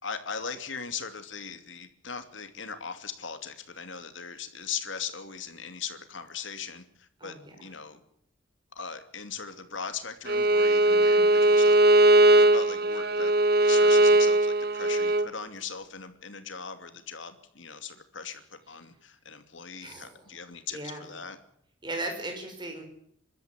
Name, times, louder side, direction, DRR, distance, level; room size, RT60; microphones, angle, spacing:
voice 1, 0.0-8.0 8.8-11.8 12.2-13.3 13.6-21.4, left 6 dB, 75° left, 8 dB, 2.7 m, -39 dB
voice 2, 7.2-7.6 19.8-20.2 20.7-21.0 21.8-22.8, right 1 dB, 25° right, 3 dB, 5.6 m, -37 dB
Bowed string instrument, 10.3-15.3, right 1 dB, 50° right, 1.1 m, -20 dB
24.5 x 13.0 x 9.7 m, 0.70 s
head